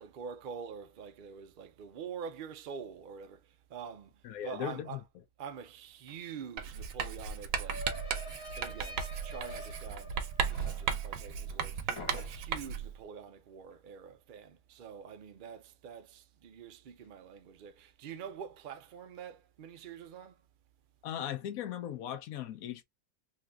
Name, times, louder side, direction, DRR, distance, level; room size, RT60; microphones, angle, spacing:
voice 1, 0.0-4.1 4.4-5.0 5.4-7.9 8.6-10.2 10.5-20.4, right 7 dB, 85° right, 0.4 m, -46 dB
voice 2, 4.2-5.0 21.0-22.8, left 10 dB, 70° left, 1.0 m, -38 dB
sound 1, 6.1-6.2 6.4-11.7 12.0-12.7, left 1 dB, 45° left, 0.4 m, -47 dB
Writing, 6.6-13.0, right 7 dB, 65° right, 1.0 m, -36 dB
3.8 x 2.7 x 2.2 m
omnidirectional pair, 1.6 m